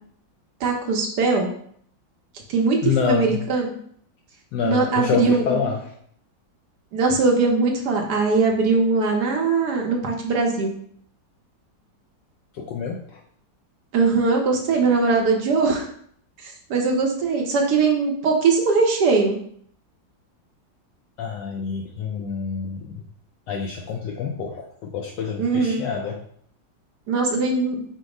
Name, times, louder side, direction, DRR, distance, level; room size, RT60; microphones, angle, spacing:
voice 1, 0.6-1.5 2.5-3.8 4.6-5.6 6.9-10.7 13.9-15.9 16.4-19.4 25.4-25.8 27.1-27.8, right 4 dB, 65° right, 1 dB, 1.2 m, -21 dB
voice 2, 2.8-3.4 4.5-5.9 12.5-13.2 21.2-23.0 23.5-26.2, left 6 dB, 75° left, 0 dB, 1.2 m, -27 dB
5.2 x 2.0 x 4.8 m, 0.64 s
omnidirectional pair, 2.1 m